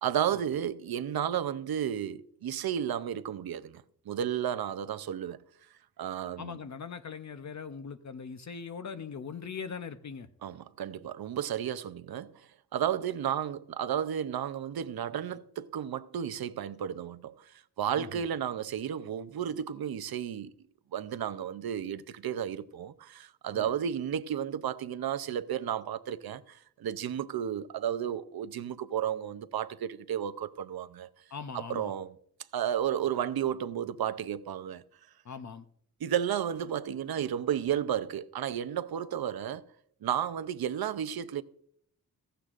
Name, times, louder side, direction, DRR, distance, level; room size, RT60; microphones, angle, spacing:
voice 1, 0.0-5.4 6.0-6.6 10.4-12.4 12.7-20.5 20.9-31.1 31.5-32.1 32.5-34.8 36.0-39.6 40.0-41.4, right 9 dB, 80° right, 0.6 m, -33 dB
voice 2, 6.4-10.3 17.9-18.2 23.5-23.7 31.3-31.9 35.2-35.7, left 6 dB, 50° left, 0.6 m, -41 dB
15.5 x 15.0 x 2.5 m
wide cardioid pair, 170°, 37 cm